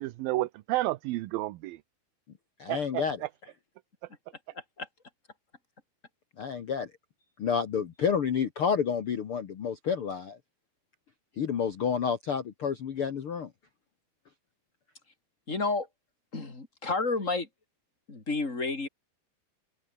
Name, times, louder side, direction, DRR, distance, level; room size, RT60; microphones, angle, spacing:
voice 1, 0.0-1.8 2.7-3.3, right 18 dB, 75° right, 2.5 m, -31 dB
voice 2, 2.6-3.2 6.4-6.9 7.4-10.4 11.4-13.5, left 7 dB, 60° left, 1.4 m, -29 dB
voice 3, 4.5-4.9 15.5-15.9 16.3-17.5 18.1-18.9, left 3 dB, 20° left, 3.5 m, -31 dB
omnidirectional pair, 4.5 m